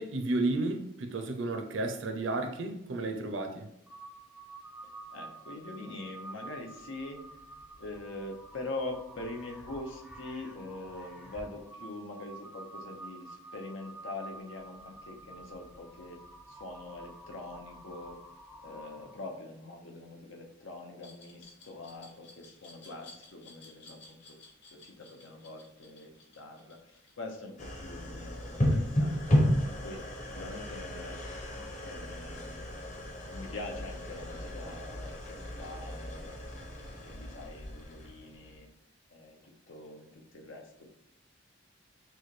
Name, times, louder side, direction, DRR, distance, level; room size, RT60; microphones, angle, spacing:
voice 1, 0.0-3.7, right 2 dB, 75° right, 5 dB, 0.6 m, -32 dB
Crow, 3.9-19.4, right 2 dB, 5° right, 0.4 m, -49 dB
voice 2, 5.1-7.3 7.8-16.2 16.5-18.2 18.6-24.4 24.7-31.2 31.8-32.8 33.3-36.5 37.0-38.7 39.1-40.9, left 2 dB, 85° left, 2 dB, 0.8 m, -44 dB
Glass, 21.0-27.8, left 3 dB, 60° left, 1.2 m, -55 dB
sound 1, 27.6-38.7, equal, 40° left, 0.9 m, -33 dB
6.0 x 2.2 x 3.2 m, 0.77 s
head